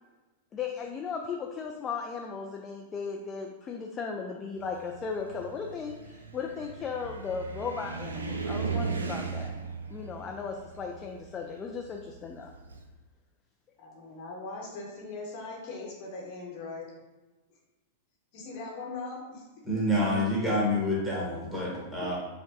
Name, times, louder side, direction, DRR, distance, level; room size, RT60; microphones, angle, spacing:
voice 1, 0.5-9.5 9.9-12.5, left 5 dB, 25° left, 1 dB, 0.3 m, -36 dB
Car, 4.6-12.8, right 4 dB, 80° right, 0.3 m, -37 dB
voice 2, 13.8-16.9 18.3-19.4, left 3 dB, 45° left, -2 dB, 0.9 m, -40 dB
voice 3, 19.6-22.2, left 1 dB, 10° right, -6 dB, 1.3 m, -28 dB
4.6 x 2.1 x 2.8 m, 1.1 s
figure-of-eight pair, 100°, 0 cm